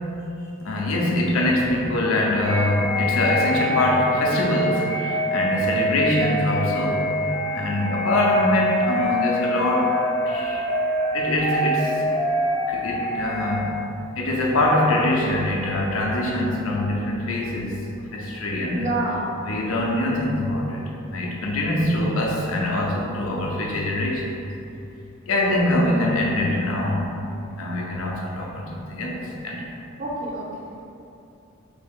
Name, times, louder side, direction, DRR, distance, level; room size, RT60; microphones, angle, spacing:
voice 1, 0.6-7.0 7.5-10.0 10.2-10.7 11.1-12.0 12.7-13.8 14.2-17.8 18.1-18.9 19.4-24.3 25.3-27.2 27.6-29.2 29.4-29.6, left 1 dB, 80° left, -1 dB, 0.6 m, -23 dB
sound 1, 2.4-13.6, left 1 dB, 15° left, 0.4 m, -25 dB
voice 2, 18.7-19.4 25.8-26.1 30.0-30.7, right 1 dB, 35° right, -5 dB, 0.6 m, -29 dB
3.3 x 2.7 x 3.6 m, 2.7 s
head